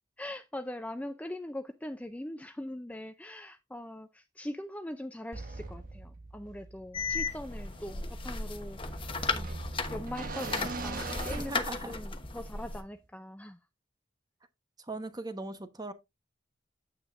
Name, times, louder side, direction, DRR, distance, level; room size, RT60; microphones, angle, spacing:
voice 1, 0.2-9.0 9.3-9.5 9.9-13.6, left 1 dB, 10° left, 0.5 m, -41 dB
sound 1, 5.3-12.3, right 3 dB, 45° right, 1.2 m, -42 dB
sound 2, 6.9-12.8, left 4 dB, 30° left, 1.0 m, -35 dB
voice 2, 11.3-11.9 14.9-15.9, right 2 dB, 20° right, 1.0 m, -39 dB
9.0 x 9.0 x 2.5 m
head